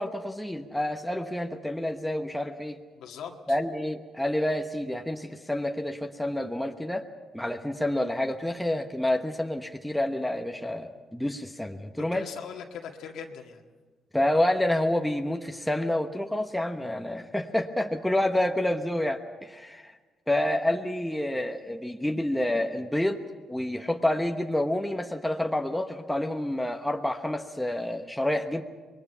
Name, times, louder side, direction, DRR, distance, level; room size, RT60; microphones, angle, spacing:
voice 1, 0.0-2.8 3.5-7.1 7.3-12.3 14.1-19.9 20.3-23.2 23.5-28.6, left 1 dB, 5° left, 4 dB, 1.1 m, -28 dB
voice 2, 2.9-3.6 12.0-13.7, left 7 dB, 80° left, 1 dB, 1.9 m, -41 dB
25.5 x 21.0 x 5.7 m, 1.4 s
cardioid pair, 90°, 0 cm